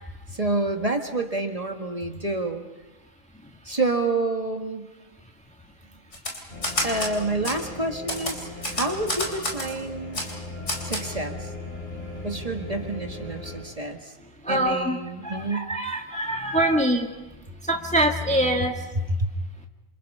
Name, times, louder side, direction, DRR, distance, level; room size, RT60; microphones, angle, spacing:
voice 1, 0.3-2.6 3.7-4.9 6.8-10.2 10.8-11.5 12.2-14.1 14.5-15.7 19.2-19.3, right 2 dB, 30° right, 4 dB, 1.8 m, -28 dB
Typewriter, 6.1-7.1 7.4-7.6 8.1-9.7 10.1-10.3 10.7-11.0, left 1 dB, 75° left, 4.3 m, -29 dB
sound 1, 6.5-13.6, left 2 dB, 55° left, 7.8 m, -38 dB
voice 2, 14.4-15.0 15.2-17.1 17.6-18.7, right 1 dB, 5° left, 2 dB, 1.5 m, -24 dB
28.0 x 27.0 x 5.6 m, 1.1 s
omnidirectional pair, 1.2 m